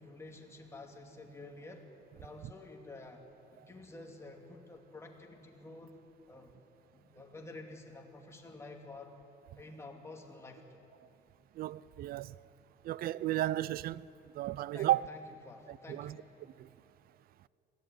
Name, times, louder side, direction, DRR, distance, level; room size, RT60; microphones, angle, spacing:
voice 1, 0.0-1.9 2.1-3.2 3.5-5.9 6.3-6.6 6.9-9.2 9.5-10.8 14.7-16.3, left 2 dB, 15° left, 2.6 m, -50 dB
voice 2, 11.6-12.5 12.8-14.1 14.3-15.0 15.7-16.1 16.6-16.7, right 14 dB, 60° right, 0.5 m, -33 dB
22.0 x 15.0 x 9.6 m
cardioid pair, 110°, 17 cm